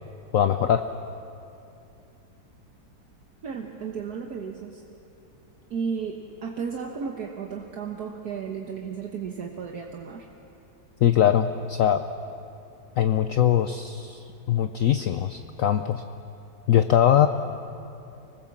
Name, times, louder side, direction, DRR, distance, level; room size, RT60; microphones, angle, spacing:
voice 1, 0.3-0.9 11.0-12.0 13.0-16.0 16.7-17.3, left 10 dB, 65° left, 9 dB, 0.8 m, -21 dB
voice 2, 3.4-4.8 5.7-10.3, right 6 dB, 60° right, 2 dB, 1.6 m, -34 dB
25.5 x 19.5 x 7.3 m, 2.7 s
omnidirectional pair, 1.9 m